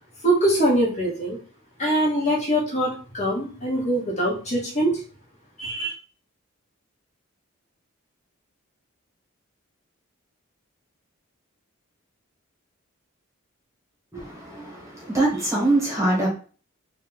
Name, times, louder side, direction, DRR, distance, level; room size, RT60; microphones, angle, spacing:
voice 1, 0.2-1.4 1.8-5.0 5.6-5.9, right 1 dB, 35° left, 1.3 m, -23 dB
voice 2, 14.1-16.3, right 2 dB, 15° right, 1.3 m, -23 dB
3.3 x 2.7 x 4.0 m
head